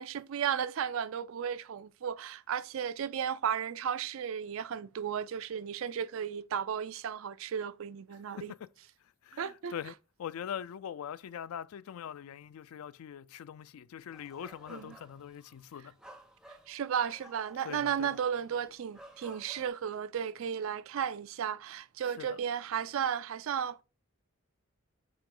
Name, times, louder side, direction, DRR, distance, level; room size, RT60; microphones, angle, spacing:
voice 1, 0.0-8.5 9.4-9.7 14.7-14.9 16.7-23.8, right 8 dB, 65° right, 0.4 m, -34 dB
voice 2, 9.2-16.0 17.6-18.2 22.2-22.4, left 9 dB, 80° left, 0.3 m, -42 dB
sound 1, 14.1-19.7, right 1 dB, 5° right, 0.7 m, -55 dB
8.6 x 3.0 x 3.6 m
head